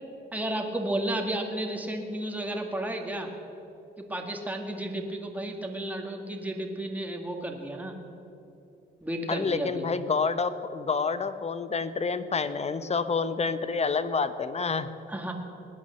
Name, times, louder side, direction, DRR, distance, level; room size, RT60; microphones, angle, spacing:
voice 1, 0.3-3.3 4.1-8.0 9.0-9.9 15.1-15.3, right 1 dB, 10° right, 2 dB, 1.9 m, -32 dB
voice 2, 9.3-14.9, left 5 dB, 35° left, 13 dB, 0.9 m, -28 dB
19.5 x 9.5 x 7.8 m, 2.9 s
cardioid pair, 90°, 20 cm